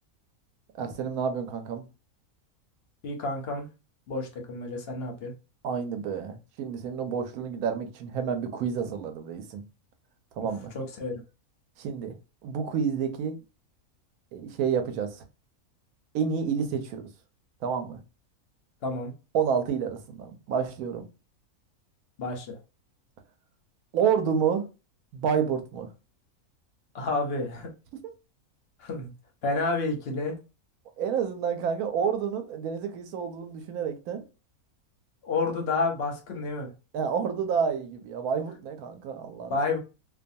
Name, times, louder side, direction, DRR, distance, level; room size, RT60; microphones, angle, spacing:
voice 1, 0.8-1.8 5.6-9.6 10.4-10.7 11.8-12.1 12.4-13.4 14.3-15.2 16.1-17.1 17.6-18.0 19.3-21.0 23.9-24.7 25.1-25.9 31.0-34.2 36.9-39.6, right 7 dB, 75° right, 1.0 m, -29 dB
voice 2, 3.0-3.7 4.1-5.3 10.7-11.1 18.8-19.1 22.2-22.6 26.9-27.7 28.8-29.1 29.4-30.3 35.2-36.7 39.5-39.8, left 3 dB, 55° left, 0.7 m, -30 dB
2.5 x 2.3 x 2.6 m
omnidirectional pair, 1.6 m